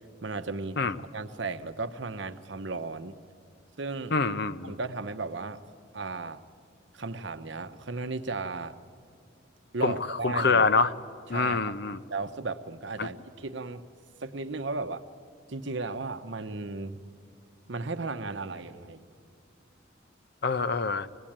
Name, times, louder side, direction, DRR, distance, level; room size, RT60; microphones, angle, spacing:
voice 1, 0.2-0.8 1.1-3.1 3.8-4.1 4.6-5.6 5.9-6.4 6.9-8.8 9.7-10.6 11.3-11.7 12.1-13.8 14.2-15.0 15.5-17.0 17.7-19.0, right 3 dB, 65° right, 9 dB, 0.9 m, -35 dB
voice 2, 4.1-4.8 9.8-10.9 11.3-12.0 13.0-13.1 20.4-21.1, left 4 dB, 55° left, 13 dB, 0.7 m, -26 dB
24.5 x 19.0 x 8.8 m, 2.4 s
head